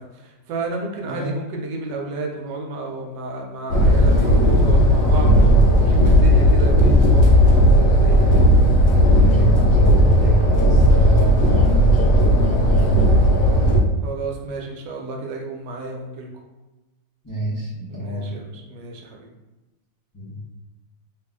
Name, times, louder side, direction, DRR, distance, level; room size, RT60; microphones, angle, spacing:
voice 1, 0.0-5.3 5.8-8.4 14.0-16.3 17.9-19.3, right 3 dB, 80° right, 1 dB, 1.3 m, -32 dB
sound 1, 3.7-13.8, equal, 85° left, 1.3 m, -15 dB
voice 2, 4.0-4.5 5.2-6.0 8.8-13.8 17.2-18.3 20.1-20.4, right 2 dB, 25° left, -8 dB, 0.4 m, -27 dB
3.2 x 2.5 x 3.5 m, 1.1 s
omnidirectional pair, 1.9 m